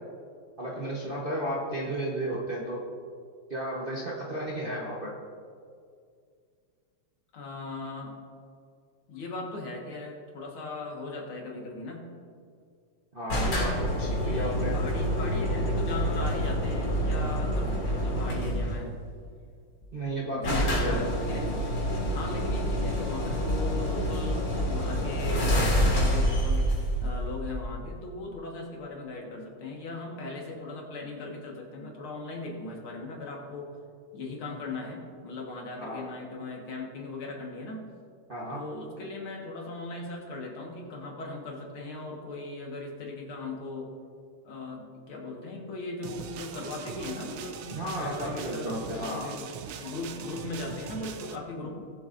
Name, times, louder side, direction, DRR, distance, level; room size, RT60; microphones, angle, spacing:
voice 1, 0.6-2.8 3.5-5.1 13.1-14.8 15.3-15.4 19.9-21.0 35.8-36.1 38.3-38.6 47.7-49.3, right 1 dB, 35° right, -5 dB, 1.0 m, -33 dB
voice 2, 7.3-8.1 9.1-12.1 14.0-18.9 20.3-21.8 22.1-33.7 34.1-37.9 38.5-43.9 44.4-47.6 48.0-49.5 49.8-51.9, left 2 dB, 75° left, -1 dB, 2.4 m, -38 dB
sound 1, 13.3-18.8 19.8-19.9 20.1-20.2 20.4-27.9, equal, 55° left, 3.0 m, -27 dB
sound 2, 46.0-51.4, right 6 dB, 80° right, 1.6 m, -41 dB
19.0 x 7.5 x 2.6 m, 2.2 s
omnidirectional pair, 2.4 m